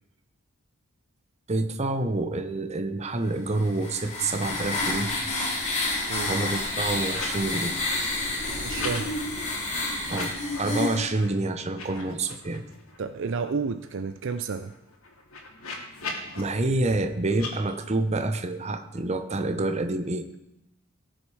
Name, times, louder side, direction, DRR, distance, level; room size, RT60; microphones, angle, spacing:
voice 1, 1.5-5.1 6.3-7.7 10.1-12.6 16.4-20.4, right 2 dB, 30° right, 8 dB, 0.8 m, -28 dB
sound 1, 3.5-11.1, left 2 dB, 30° left, 2.6 m, -29 dB
sound 2, 3.9-4.1 4.3-5.0 5.3-7.4 7.7-9.0 10.0-10.7 11.1-11.3 11.6-13.0 13.4-13.5 13.7-16.4 17.3-17.5, left 3 dB, 75° left, 2.4 m, -40 dB
voice 2, 8.6-9.1 13.0-14.7, right 5 dB, 55° right, 10 dB, 0.4 m, -31 dB
18.0 x 6.5 x 4.8 m, 0.88 s
head